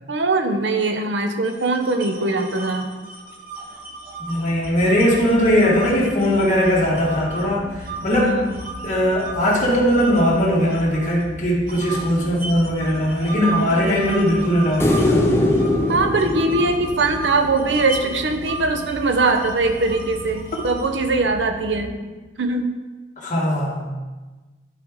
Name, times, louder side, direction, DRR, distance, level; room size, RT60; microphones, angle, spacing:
voice 1, 0.1-2.9 8.1-8.5 13.7-14.7 15.9-22.0 22.4-22.7, right 3 dB, 80° right, 6 dB, 0.8 m, -22 dB
sound 1, 1.4-7.4 7.8-11.2 11.7-21.0, right 2 dB, 55° right, 1.1 m, -35 dB
voice 2, 4.3-8.4 8.8-15.3 23.2-24.1, equal, 45° left, -4 dB, 1.9 m, -20 dB
sound 2, 4.5-21.9, left 1 dB, 25° right, 0.6 m, -38 dB
sound 3, 14.8-18.1 20.6-20.7, left 1 dB, 15° left, 0.7 m, -21 dB
11.0 x 4.7 x 3.7 m, 1.2 s
head